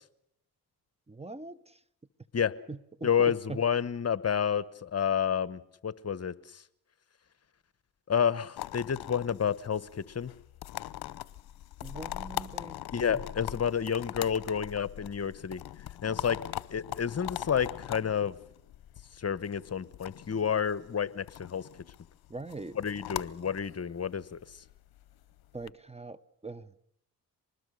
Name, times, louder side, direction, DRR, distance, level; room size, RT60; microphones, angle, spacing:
voice 1, 1.1-1.8 2.7-3.6 11.8-12.8 13.1-13.2 22.3-22.8 25.5-26.7, right 3 dB, 15° right, 17 dB, 1.0 m, -42 dB
voice 2, 3.0-6.6 8.1-10.3 12.9-15.6 16.0-16.4 16.7-18.3 19.2-21.7 22.7-24.4, left 7 dB, 40° left, 16 dB, 1.1 m, -30 dB
sound 1, 8.6-25.7, left 14 dB, 70° left, 0.8 m, -42 dB
24.5 x 20.5 x 6.6 m, 0.75 s
cardioid pair, 70°, 38 cm